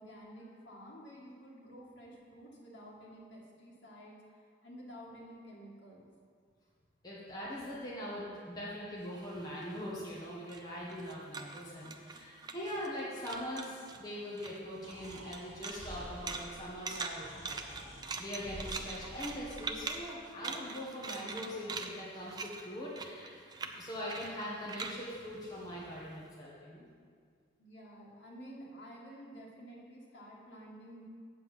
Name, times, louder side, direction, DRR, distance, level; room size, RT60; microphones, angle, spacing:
voice 1, 0.0-4.2 4.6-6.1 27.6-31.0, equal, 75° left, -5 dB, 1.9 m, -51 dB
voice 2, 7.0-17.7 18.2-23.4 23.8-26.9, equal, 20° left, -6 dB, 1.3 m, -42 dB
sound 1, 9.0-13.0 13.2-14.0 14.3-26.2, right 4 dB, 20° right, 0.4 m, -43 dB
Breathing, 14.8-19.9, equal, 40° right, 1.4 m, -49 dB
8.2 x 5.2 x 7.3 m, 2.1 s
head